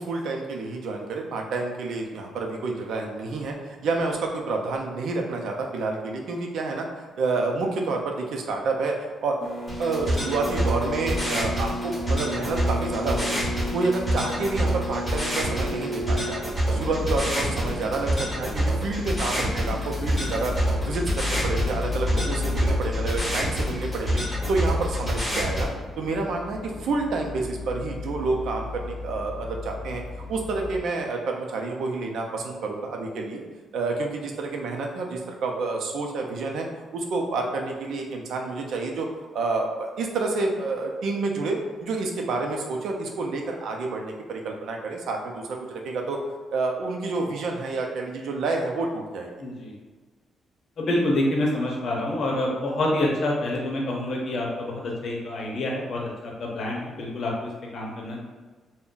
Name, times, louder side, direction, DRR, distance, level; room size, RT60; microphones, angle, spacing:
voice 1, 0.0-9.4 9.8-13.4 13.7-16.4 16.7-24.2 24.5-25.7 26.0-30.0 30.3-33.4 33.7-36.7 36.9-39.1 39.3-46.2 46.5-49.3, right 3 dB, 75° right, 2 dB, 0.4 m, -29 dB
sound 1, 9.4-16.3, equal, 25° right, 0.6 m, -33 dB
sound 2, 9.7-25.7, right 1 dB, ahead, 1.3 m, -27 dB
sound 3, 16.7-30.8, left 3 dB, 30° left, 0.4 m, -33 dB
voice 2, 49.4-49.8 50.8-58.2, left 1 dB, 55° left, -2 dB, 0.7 m, -27 dB
2.5 x 2.1 x 3.7 m, 1.4 s
cardioid pair, 140°, 0 cm